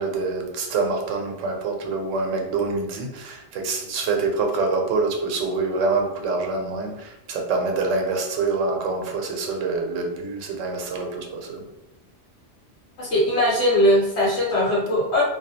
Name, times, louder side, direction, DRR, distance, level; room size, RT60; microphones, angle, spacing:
voice 1, 0.0-11.6, right 3 dB, 90° right, 2 dB, 0.9 m, -26 dB
voice 2, 13.0-15.2, left 1 dB, 65° left, -7 dB, 1.1 m, -20 dB
2.3 x 2.2 x 2.7 m, 0.91 s
omnidirectional pair, 1.2 m